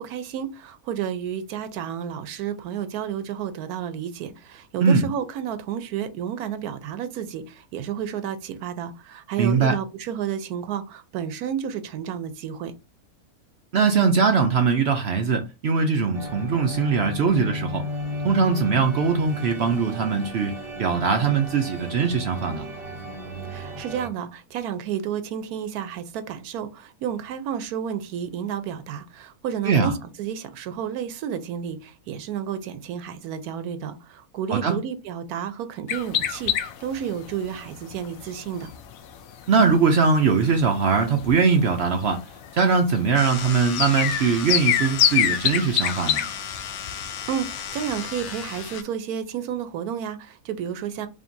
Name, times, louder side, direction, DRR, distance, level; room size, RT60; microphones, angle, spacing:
voice 1, 0.0-12.7 23.5-38.7 47.0-51.1, right 9 dB, 85° right, 1.1 m, -31 dB
voice 2, 9.4-9.7 13.7-17.8 18.2-22.7 29.6-29.9 34.5-34.7 39.5-42.2 42.5-46.2, right 5 dB, 60° right, 0.7 m, -21 dB
sound 1, 16.1-24.1, left 1 dB, 40° right, 1.8 m, -34 dB
sound 2, 35.9-48.8, left 9 dB, 70° left, 1.0 m, -28 dB
sound 3, 43.2-48.8, left 8 dB, 90° left, 1.1 m, -35 dB
5.0 x 2.8 x 2.6 m
omnidirectional pair, 1.6 m